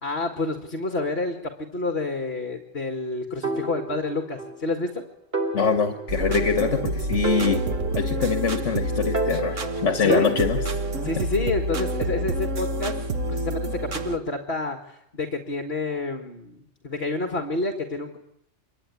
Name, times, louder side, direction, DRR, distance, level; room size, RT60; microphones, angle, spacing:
voice 1, 0.0-5.0 10.0-10.5 11.0-13.0 13.3-18.2, left 2 dB, 55° left, 5 dB, 2.2 m, -29 dB
sound 1, 3.4-4.6 4.9-5.0 5.3-6.9 7.2-8.7 9.1-11.0, right 2 dB, 50° right, 3.7 m, -30 dB
voice 2, 5.5-7.6 7.9-10.8, left 6 dB, 75° left, 7 dB, 1.8 m, -24 dB
sound 2, 6.1-14.2, right 2 dB, 85° right, 1.8 m, -28 dB
25.5 x 23.0 x 9.8 m, 0.78 s
omnidirectional pair, 1.2 m